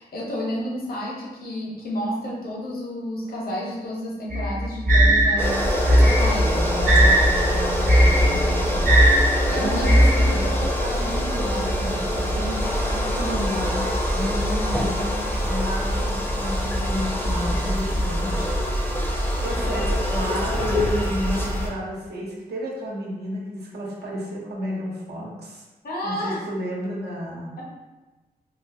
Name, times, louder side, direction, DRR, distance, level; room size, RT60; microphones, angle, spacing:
voice 1, 0.0-5.6 6.0-8.9 9.2-10.5 25.8-26.4 27.6-27.7, equal, 65° left, -4 dB, 0.9 m, -31 dB
sound 1, 4.3-10.6, equal, 55° right, 0.8 m, -18 dB
sound 2, 5.4-21.7, equal, 15° left, 0.5 m, -24 dB
voice 2, 9.5-18.9 19.4-25.6 26.0-27.6, equal, 85° right, -4 dB, 0.9 m, -32 dB
3.8 x 2.3 x 2.6 m, 1.2 s
wide cardioid pair, 90°, 16 cm